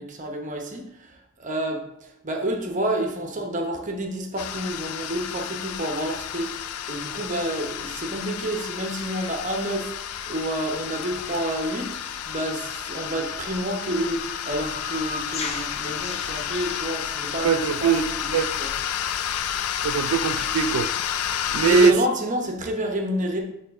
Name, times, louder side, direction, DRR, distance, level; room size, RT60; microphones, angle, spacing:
voice 1, 0.0-1.8 2.2-6.5 6.9-9.9 10.3-12.0 12.3-18.7 21.4-23.4, right 1 dB, 35° right, 2 dB, 0.9 m, -29 dB
sound 1, 4.4-21.9, left 9 dB, 80° left, 0.4 m, -31 dB
sound 2, 8.9-18.1, left 3 dB, 30° left, 0.6 m, -41 dB
voice 2, 17.4-18.0 18.3-18.5 19.8-20.9 21.5-21.9, right 7 dB, 75° right, 10 dB, 0.3 m, -21 dB
9.3 x 3.1 x 3.5 m, 0.82 s
head